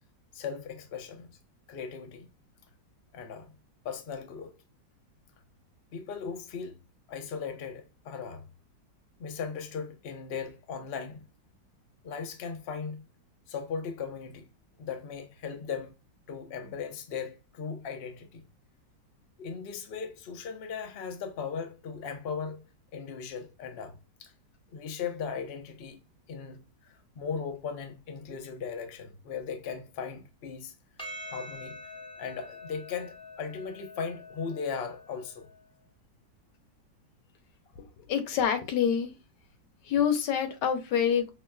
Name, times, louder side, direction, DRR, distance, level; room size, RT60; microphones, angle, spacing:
voice 1, 0.3-1.4 1.7-2.3 3.1-3.5 3.8-4.5 5.9-6.8 7.1-8.5 9.2-11.2 12.0-13.0 13.5-14.5 14.8-15.9 16.3-18.4 19.4-22.7 22.9-24.3 24.7-26.0 26.3-30.7 31.3-31.8 32.2-35.5, left 6 dB, 90° left, 0.5 m, -38 dB
Percussion, 31.0-35.6, left 1 dB, 5° left, 0.7 m, -45 dB
voice 2, 37.8-39.1 39.8-41.3, left 8 dB, 70° left, 1.2 m, -27 dB
5.5 x 2.5 x 2.2 m
omnidirectional pair, 2.0 m